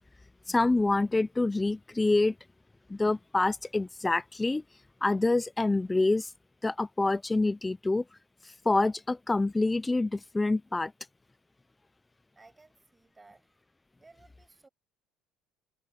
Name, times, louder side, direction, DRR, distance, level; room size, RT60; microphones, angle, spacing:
voice 1, 0.5-2.3 2.9-4.6 5.0-6.3 6.6-8.0 8.7-10.9, left 2 dB, 10° left, 0.3 m, -26 dB
voice 2, 12.4-13.6 14.0-14.7, right 3 dB, 15° right, 7.4 m, -58 dB
cardioid pair, 125°, 0 cm